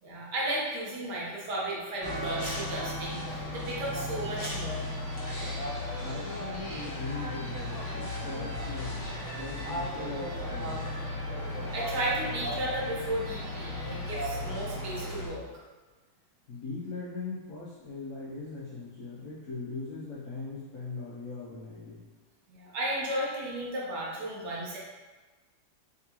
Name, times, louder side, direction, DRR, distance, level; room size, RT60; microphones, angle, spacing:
voice 1, 0.0-4.9 11.4-15.4 22.5-24.8, right 1 dB, 65° right, -5 dB, 1.3 m, -34 dB
sound 1, 2.0-15.3, left 1 dB, 20° left, 0.6 m, -35 dB
voice 2, 6.0-8.9 9.3-11.0 16.5-22.0, left 3 dB, 65° left, -8 dB, 0.8 m, -40 dB
3.7 x 3.6 x 2.9 m, 1.3 s
omnidirectional pair, 2.1 m